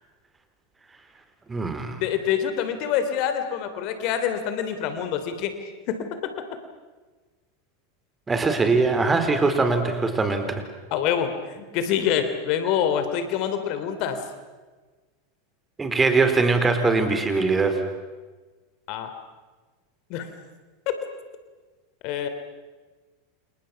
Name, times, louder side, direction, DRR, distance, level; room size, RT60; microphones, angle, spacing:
voice 1, 1.5-2.0 8.3-10.5 15.8-17.8, right 3 dB, 15° right, 7 dB, 4.2 m, -21 dB
voice 2, 2.0-5.5 5.9-6.4 10.9-14.2 18.9-19.1 20.1-20.3 22.0-22.3, left 9 dB, 50° left, 9 dB, 3.2 m, -26 dB
30.0 x 28.5 x 6.0 m, 1.3 s
hypercardioid pair, 90°, 0 cm